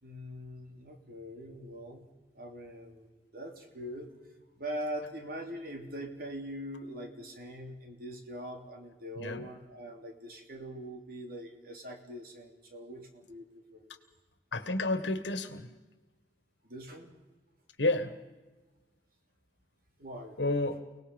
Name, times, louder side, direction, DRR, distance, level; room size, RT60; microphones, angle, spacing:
voice 1, 0.0-2.1 2.3-4.1 4.5-13.9 16.6-17.1 20.0-20.4, equal, 55° right, 3 dB, 3.2 m, -42 dB
voice 2, 14.5-15.7 17.8-18.1 20.4-20.8, left 2 dB, 85° left, 10 dB, 1.7 m, -30 dB
29.5 x 19.0 x 5.4 m, 1.2 s
head